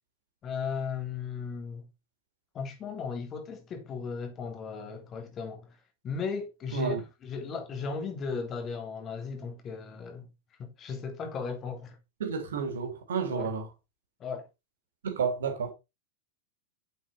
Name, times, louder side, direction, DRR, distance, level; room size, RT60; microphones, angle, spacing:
voice 1, 0.4-1.8 2.5-5.7 6.0-6.9 7.2-10.3 10.6-12.0 13.3-13.5 14.2-14.5, left 5 dB, 30° left, 3.1 m, -36 dB
voice 2, 12.2-13.7 15.0-15.7, right 6 dB, 65° right, 3.3 m, -31 dB
9.5 x 7.8 x 4.1 m
figure-of-eight pair, 90°, 0 cm